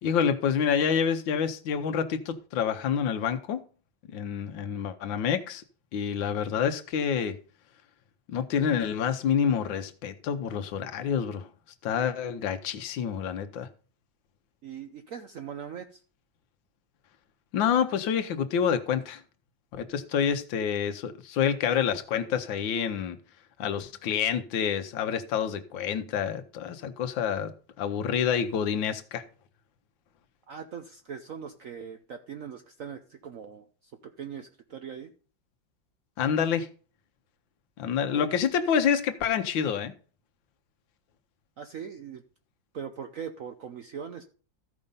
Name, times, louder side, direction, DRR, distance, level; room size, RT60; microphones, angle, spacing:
voice 1, 0.0-3.6 4.1-5.6 5.9-7.4 8.3-11.5 11.8-13.7 17.5-19.2 19.7-23.2 23.6-27.5 27.8-29.2 36.2-36.7 37.8-39.9, left 7 dB, 90° left, 1.5 m, -27 dB
voice 2, 14.6-16.0 20.1-20.2 30.5-35.1 38.1-38.3 41.6-42.2 42.7-44.2, right 7 dB, 60° right, 1.0 m, -41 dB
14.0 x 5.2 x 5.4 m
omnidirectional pair, 2.0 m